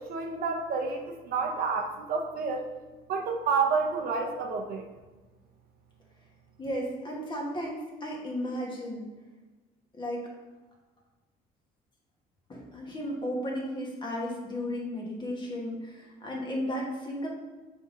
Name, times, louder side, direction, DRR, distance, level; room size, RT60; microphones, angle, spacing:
voice 1, 0.0-2.7 3.1-4.9, right 4 dB, 60° right, 3 dB, 0.8 m, -29 dB
voice 2, 6.6-9.1 9.9-10.3 12.5-17.3, equal, 25° left, -2 dB, 1.6 m, -34 dB
6.5 x 3.6 x 3.9 m, 1.2 s
cardioid pair, 110°, 17 cm